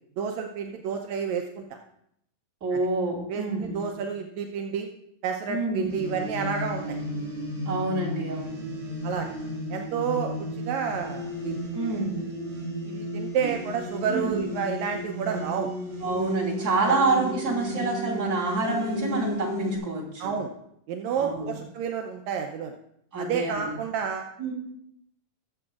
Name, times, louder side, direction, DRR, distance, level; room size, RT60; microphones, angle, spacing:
voice 1, 0.2-1.8 2.7-2.8 3.3-4.9 5.2-7.0 9.0-9.3 9.7-11.6 12.9-15.7 16.9-17.0 20.2-20.5 20.9-22.7 23.2-24.2, right 7 dB, 80° right, 3 dB, 1.6 m, -30 dB
voice 2, 2.6-3.9 5.5-5.9 7.6-8.6 10.2-10.4 11.7-12.1 14.1-14.4 16.0-20.3 21.2-21.6 23.1-23.8 24.4-24.5, right 3 dB, 30° right, -5 dB, 3.2 m, -27 dB
sound 1, 5.9-19.8, equal, 50° right, 5.1 m, -34 dB
20.0 x 7.9 x 2.4 m, 0.74 s
omnidirectional pair, 3.9 m